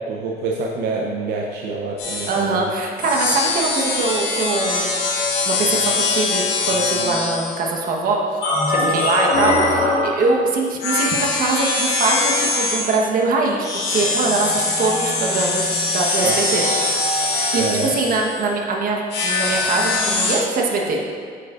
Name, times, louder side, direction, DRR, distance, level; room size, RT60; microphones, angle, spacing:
voice 1, 0.1-2.6 8.8-9.1 16.2-16.3 17.6-17.9, right 4 dB, 80° right, -2 dB, 0.8 m, -26 dB
sound 1, 2.0-2.4 3.0-7.7 8.4-10.2 10.8-13.0 13.6-18.5 19.1-20.3, left 3 dB, 90° left, 1.8 m, -22 dB
voice 2, 2.2-4.9 5.4-8.2 8.7-16.6 17.5-21.0, right 3 dB, 55° right, 0 dB, 1.3 m, -22 dB
8.4 x 8.1 x 2.6 m, 2.1 s
cardioid pair, 110°, 17 cm